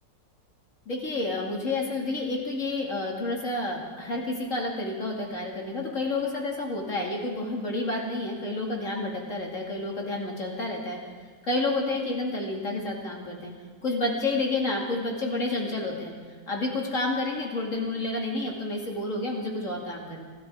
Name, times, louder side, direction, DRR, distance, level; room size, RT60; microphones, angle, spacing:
voice 1, 0.9-11.0 11.4-13.5 13.8-16.1 16.5-20.2, left 2 dB, 45° left, -1 dB, 2.7 m, -30 dB
25.0 x 14.5 x 3.7 m, 1.5 s
omnidirectional pair, 2.0 m